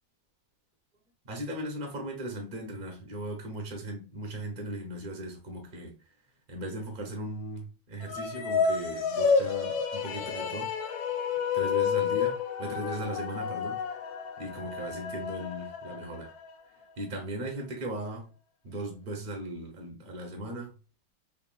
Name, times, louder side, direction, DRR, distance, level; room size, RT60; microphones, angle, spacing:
voice 1, 1.2-5.9 6.5-10.7 11.5-14.0 14.4-16.3 17.0-18.3 18.6-20.7, right 1 dB, 50° right, 0.6 m, -38 dB
sound 1, 8.0-16.5, left 6 dB, 75° left, 1.3 m, -30 dB
4.9 x 2.8 x 2.4 m
omnidirectional pair, 2.3 m